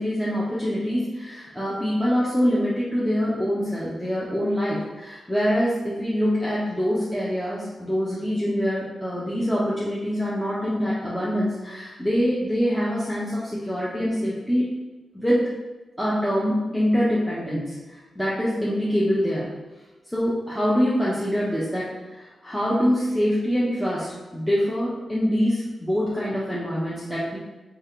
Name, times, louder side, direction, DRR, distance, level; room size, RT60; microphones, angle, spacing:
voice 1, 0.0-14.7 15.1-15.4 16.0-19.5 20.1-27.4, equal, 5° left, -8 dB, 0.7 m, -24 dB
3.4 x 2.4 x 4.4 m, 1.2 s
wide cardioid pair, 110°, 0 cm